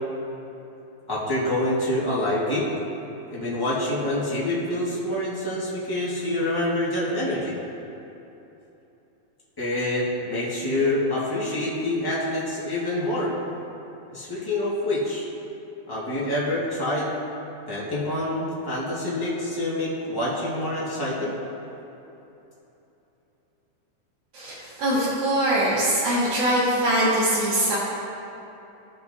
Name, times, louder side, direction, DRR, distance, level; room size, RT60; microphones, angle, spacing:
voice 1, 1.1-2.7 3.3-7.5 9.6-13.3 14.1-15.3 15.9-17.1 17.7-21.3, left 1 dB, 15° left, -8 dB, 0.7 m, -26 dB
voice 2, 24.3-27.8, right 1 dB, 75° right, -12 dB, 3.0 m, -22 dB
16.5 x 5.8 x 2.7 m, 3.0 s
omnidirectional pair, 3.5 m